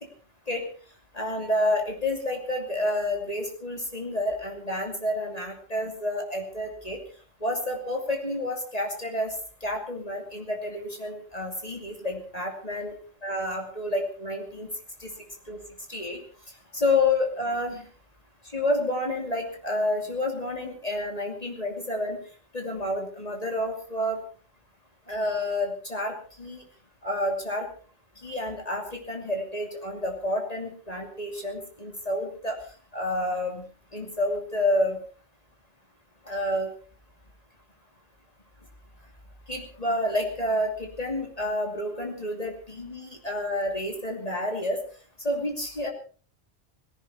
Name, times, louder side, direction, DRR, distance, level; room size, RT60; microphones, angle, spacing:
voice 1, 1.1-7.0 7.4-9.3 9.6-12.9 13.2-14.7 15.0-15.1 15.5-15.6 15.9-16.2 16.7-17.9 18.5-22.2 22.5-24.2 25.1-26.6 27.0-27.7 28.2-32.6 32.9-33.6 33.9-35.0 36.3-36.7 39.5-44.8 45.2-45.9, left 1 dB, 35° left, 2 dB, 2.9 m, -29 dB
18.5 x 16.5 x 4.3 m, 0.41 s
omnidirectional pair, 1.1 m